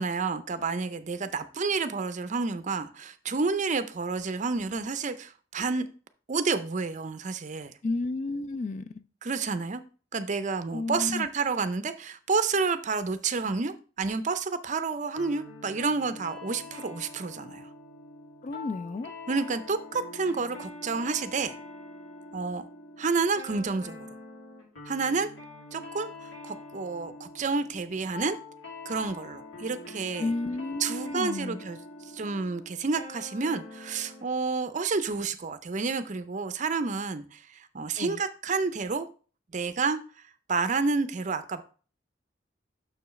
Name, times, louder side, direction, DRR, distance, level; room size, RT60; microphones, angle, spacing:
voice 1, 0.0-5.9 6.3-7.7 9.2-9.8 10.1-17.7 19.3-21.6 22.3-22.7 23.0-24.1 24.9-25.3 25.7-28.4 28.9-30.3 30.8-31.8 32.1-39.1 39.5-40.0 40.5-41.6, right 4 dB, 40° right, 11 dB, 0.5 m, -30 dB
voice 2, 7.8-9.0 10.7-11.3 18.4-19.1 30.2-31.6 38.0-38.2, left 3 dB, 40° left, 13 dB, 0.3 m, -32 dB
sound 1, 15.1-34.3, left 2 dB, 85° left, 2.8 m, -45 dB
6.9 x 6.4 x 3.1 m, 0.38 s
head